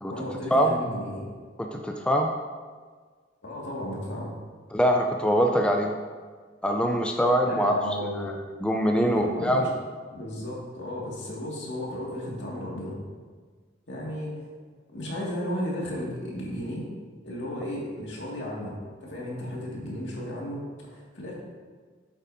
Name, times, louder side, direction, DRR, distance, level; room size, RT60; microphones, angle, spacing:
voice 1, 0.1-1.3 3.4-4.3 7.4-8.3 9.0-9.7 10.1-13.0 13.9-14.5 14.9-16.9 17.2-21.3, left 1 dB, 75° left, -4 dB, 2.2 m, -34 dB
voice 2, 1.6-2.3 4.7-6.0 6.6-7.8 8.2-8.3 8.6-9.7, equal, 5° left, 2 dB, 0.5 m, -23 dB
8.7 x 8.3 x 2.8 m, 1.5 s
head